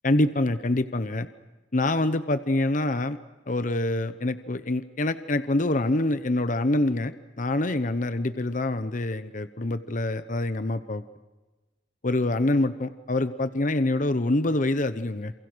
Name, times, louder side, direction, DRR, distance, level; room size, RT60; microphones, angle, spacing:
voice 1, 0.0-1.3 1.7-3.2 3.5-11.0 12.0-15.3, left 2 dB, 45° left, 11 dB, 0.9 m, -25 dB
28.0 x 28.0 x 6.3 m, 1.2 s
head